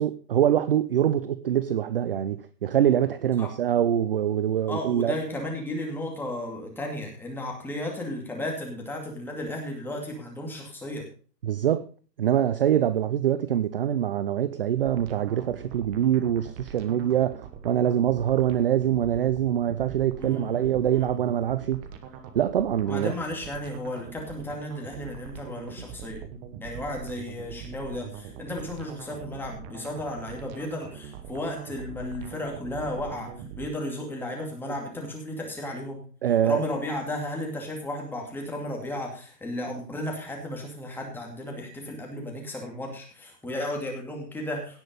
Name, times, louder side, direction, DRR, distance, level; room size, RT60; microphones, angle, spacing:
voice 1, 0.0-5.2 11.4-11.8 12.2-21.9 22.3-23.1 36.2-36.6, right 10 dB, 35° right, 0.5 m, -24 dB
voice 2, 4.7-11.1 20.2-21.1 22.9-26.2 26.6-36.0 36.4-44.8, left 1 dB, 5° left, 2.4 m, -34 dB
sound 1, 14.8-33.7, right 7 dB, 20° right, 1.1 m, -43 dB
17.0 x 6.2 x 5.3 m
hypercardioid pair, 160°, 48 cm